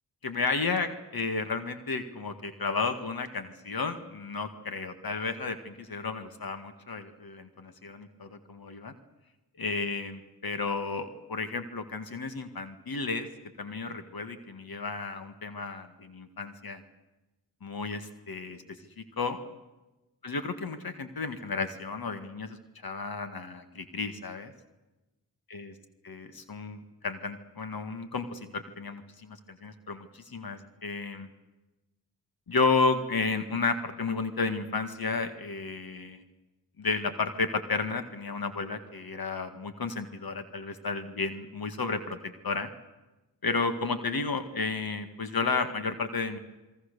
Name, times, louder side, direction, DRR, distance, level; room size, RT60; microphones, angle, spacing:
voice 1, 0.2-8.9 9.6-13.3 13.6-16.8 17.6-18.6 19.0-19.4 20.2-24.5 25.5-25.7 26.1-31.3 32.5-36.2 36.8-42.7 43.4-46.4, left 4 dB, 55° left, 9 dB, 1.9 m, -32 dB
27.5 x 21.5 x 6.8 m, 1.1 s
supercardioid pair, 45°, 43 cm